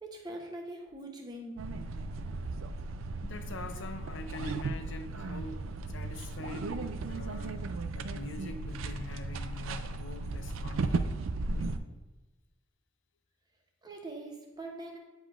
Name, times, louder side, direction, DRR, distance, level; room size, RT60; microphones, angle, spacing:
voice 1, 0.0-1.6 13.8-15.0, right 1 dB, 20° right, 1 dB, 0.9 m, -42 dB
sound 1, 1.6-11.8, right 3 dB, 90° right, 0.4 m, -36 dB
voice 2, 3.2-7.7 7.9-11.0 11.5-11.8, left 3 dB, 70° left, 7 dB, 0.6 m, -44 dB
9.3 x 5.1 x 2.5 m, 1.2 s
head